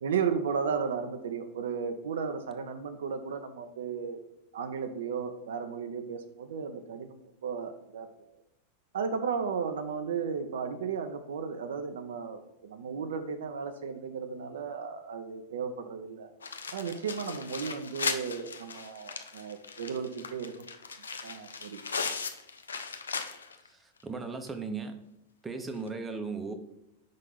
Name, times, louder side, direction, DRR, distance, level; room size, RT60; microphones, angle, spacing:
voice 1, 0.0-4.2 4.5-8.1 8.9-16.3 16.7-20.7 21.2-21.8, right 6 dB, 60° right, 7 dB, 0.5 m, -34 dB
sound 1, 16.4-23.7 24.0-24.1 24.5-24.6 25.8-25.9, left 5 dB, 70° left, 0.5 m, -37 dB
voice 2, 23.6-25.0 25.4-26.5, right 4 dB, 15° right, 6 dB, 0.7 m, -37 dB
5.4 x 3.9 x 5.5 m, 0.84 s
figure-of-eight pair, 90°, 0 cm